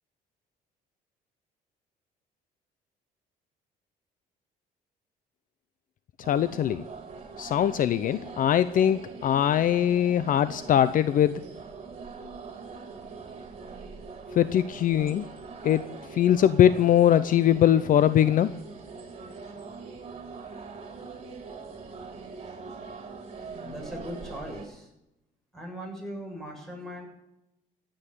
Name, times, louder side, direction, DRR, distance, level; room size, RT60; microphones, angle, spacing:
sound 1, 6.2-24.7, right 4 dB, 35° right, 3.8 m, -42 dB
voice 1, 6.3-6.8 7.4-11.4 14.3-15.2 15.6-15.8 16.1-18.5, left 10 dB, 55° left, 14 dB, 0.7 m, -21 dB
voice 2, 22.1-23.0 23.6-24.9 25.5-27.0, equal, ahead, 0 dB, 7.4 m, -40 dB
16.0 x 9.0 x 9.6 m, 0.86 s
cardioid pair, 110°, 17 cm